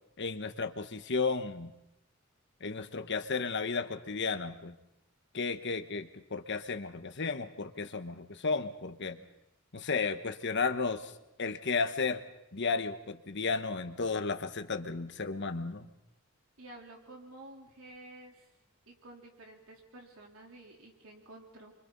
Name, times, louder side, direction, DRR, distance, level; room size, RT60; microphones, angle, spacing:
voice 1, 0.2-1.7 2.6-4.7 5.3-9.2 9.7-11.1 11.4-12.2 12.5-15.9, left 4 dB, 60° left, 8 dB, 1.2 m, -33 dB
voice 2, 16.6-18.5 18.9-21.7, right 1 dB, 80° right, 0 dB, 3.8 m, -51 dB
29.5 x 24.5 x 4.1 m, 0.86 s
head